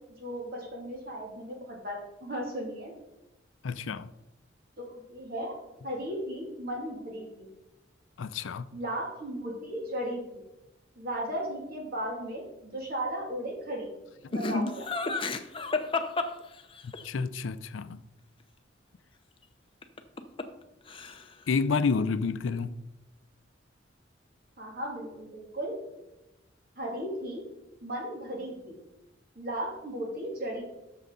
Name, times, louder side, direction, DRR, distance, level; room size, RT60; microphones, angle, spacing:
voice 1, 0.2-2.9 4.8-5.6 5.8-7.5 8.7-10.4 11.0-13.9 14.3-14.9 24.6-25.7 26.8-27.4 27.8-28.8 29.4-30.6, right 1 dB, 50° right, 2.5 m, -36 dB
voice 2, 3.6-4.1 8.2-8.7 16.8-18.0 21.5-22.7, left 4 dB, 80° left, 0.5 m, -29 dB
Laughter, 14.3-17.0 19.8-20.6 20.9-21.4, left 3 dB, 25° left, 0.6 m, -31 dB
12.5 x 6.6 x 3.9 m
head